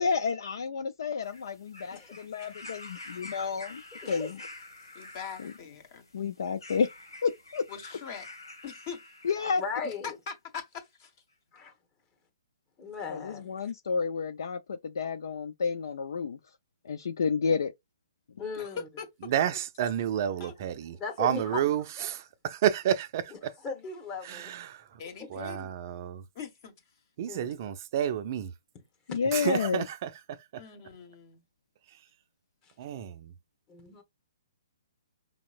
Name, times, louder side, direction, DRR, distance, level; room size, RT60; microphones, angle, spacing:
voice 1, 0.0-4.4 5.4-5.5 6.1-6.9 7.2-7.6 9.2-9.6 13.1-16.4 16.8-17.7 29.1-29.9, left 5 dB, 70° left, 0.5 m, -30 dB
sound 1, 1.2-9.9 10.8-10.9, left 2 dB, 85° left, 1.6 m, -48 dB
voice 2, 4.0-4.3 9.6-10.2 11.5-11.7 12.8-13.7 18.4-18.9 21.0-21.6 22.0-22.1 23.6-24.5 25.0-25.3 27.3-27.6 29.1-29.2 32.6-32.7 33.7-34.0, left 5 dB, 25° left, 1.2 m, -38 dB
voice 3, 4.9-6.1 7.7-8.3 8.6-9.0 9.8-9.9 10.3-11.1 18.5-18.7 19.0-19.3 20.4-20.5 25.0-25.7 26.3-26.7 30.5-31.4, left 7 dB, 45° left, 1.6 m, -42 dB
voice 4, 19.3-23.5 24.2-24.8 25.3-26.2 27.2-28.5 29.3-30.6 32.8-33.3, right 10 dB, 45° right, 0.5 m, -30 dB
5.3 x 2.9 x 2.5 m
hypercardioid pair, 135°, 2 cm